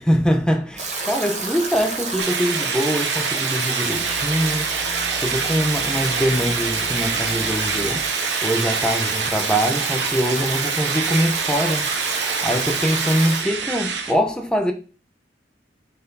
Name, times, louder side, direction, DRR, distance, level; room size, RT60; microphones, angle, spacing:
voice 1, 0.0-14.7, equal, 5° left, 1.0 m, -23 dB
Stream / Drip / Trickle dribble, 0.8-13.4, right 3 dB, 40° right, 1.7 m, -29 dB
sound 1, 2.2-14.1, right 6 dB, 75° right, 1.1 m, -26 dB
sound 2, 3.9-8.0, equal, 80° left, 1.2 m, -39 dB
6.2 x 4.6 x 4.0 m
head